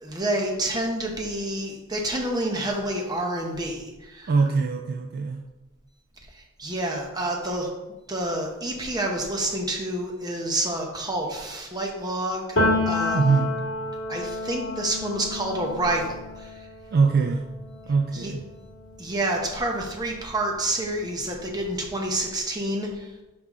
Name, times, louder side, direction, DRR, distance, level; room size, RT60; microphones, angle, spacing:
voice 1, 0.0-4.3 6.6-7.7 8.1-12.6 12.9-13.4 14.1-16.7 18.1-18.3 19.0-23.1, right 1 dB, 20° right, 1 dB, 0.8 m, -28 dB
voice 2, 4.3-5.4 13.1-13.5 16.9-17.4 17.9-18.5, right 4 dB, 45° right, 4 dB, 0.3 m, -22 dB
Piano, 12.6-20.2 20.5-22.1, left 2 dB, 55° left, 1.7 m, -31 dB
5.6 x 4.7 x 3.6 m, 1.1 s
head